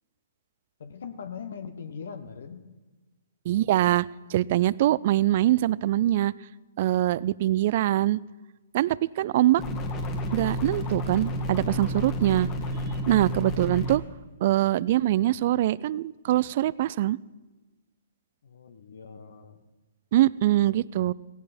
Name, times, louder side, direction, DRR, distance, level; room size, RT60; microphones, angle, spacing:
voice 1, 0.8-2.7 18.4-19.6, left 6 dB, 65° left, 10 dB, 1.3 m, -41 dB
voice 2, 3.5-6.3 6.8-8.2 8.7-9.6 10.3-12.5 13.1-14.0 14.4-17.2 20.1-21.1, right 14 dB, 50° right, 21 dB, 0.4 m, -23 dB
sound 1, 9.6-14.0, equal, 30° left, 1.9 m, -31 dB
17.0 x 17.0 x 4.3 m, 1.2 s
hypercardioid pair, 125°, 0 cm